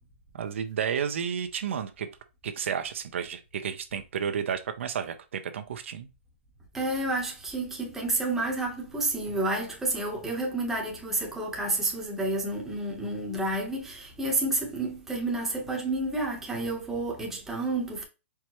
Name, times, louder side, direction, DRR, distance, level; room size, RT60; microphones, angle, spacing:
voice 1, 0.3-2.1 2.4-6.1, right 7 dB, 70° right, 0.6 m, -32 dB
voice 2, 6.7-18.0, right 2 dB, 5° right, 0.9 m, -30 dB
4.6 x 3.4 x 2.9 m
hypercardioid pair, 160°, 7 cm